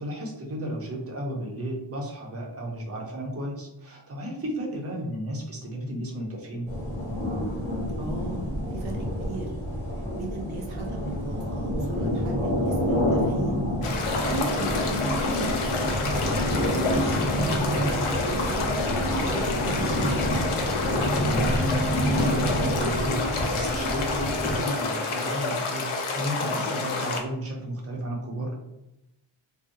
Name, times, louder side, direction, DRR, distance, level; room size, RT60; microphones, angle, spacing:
voice 1, 0.0-6.7 21.2-28.6, equal, 30° right, -1 dB, 0.6 m, -33 dB
voice 2, 4.7-5.1 8.0-8.4 8.7-9.5 10.2-13.7 14.2-17.8 18.2-20.8, right 2 dB, 80° right, 1 dB, 0.7 m, -36 dB
sound 1, 6.7-24.6, equal, 5° left, 0.9 m, -28 dB
sound 2, 13.8-27.2, left 3 dB, 85° left, 0.6 m, -29 dB
2.6 x 2.0 x 2.6 m, 0.90 s
wide cardioid pair, 130°, 48 cm